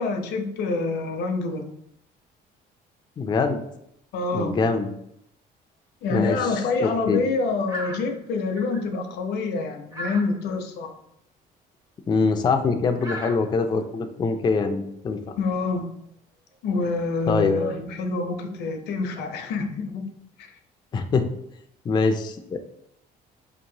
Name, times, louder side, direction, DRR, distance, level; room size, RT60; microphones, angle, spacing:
voice 1, 0.0-1.7 4.1-4.5 6.0-10.9 15.3-15.9 16.6-20.0 20.4-20.5, left 3 dB, 75° left, 5 dB, 0.6 m, -26 dB
voice 2, 3.2-3.6 4.3-4.9 6.1-6.5 6.8-7.2 12.1-15.3 17.3-17.5 20.9-21.3 21.9-22.6, left 4 dB, 25° left, 6 dB, 0.3 m, -23 dB
sound 1, 7.7-8.2 8.6-8.8 9.9-10.4 12.3-12.5 13.0-13.6 15.9-16.0, equal, 20° right, 0.6 m, -36 dB
4.3 x 2.9 x 2.6 m, 0.75 s
cardioid pair, 110°, 17 cm